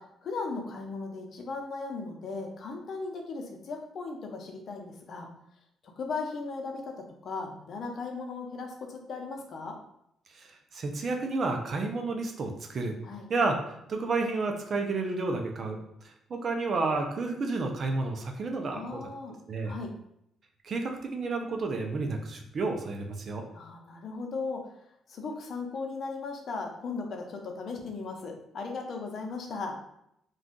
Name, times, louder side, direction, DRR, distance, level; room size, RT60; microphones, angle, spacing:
voice 1, 0.0-5.3 5.8-6.8 7.2-9.7 13.0-13.2 18.6-19.4 19.6-19.9 23.5-29.8, left 4 dB, 60° left, 2 dB, 0.6 m, -37 dB
voice 2, 10.3-13.0 13.3-19.0 19.5-19.7 20.6-23.4, right 3 dB, 50° right, 3 dB, 0.5 m, -31 dB
2.5 x 2.3 x 3.6 m, 0.77 s
cardioid pair, 90°, 0 cm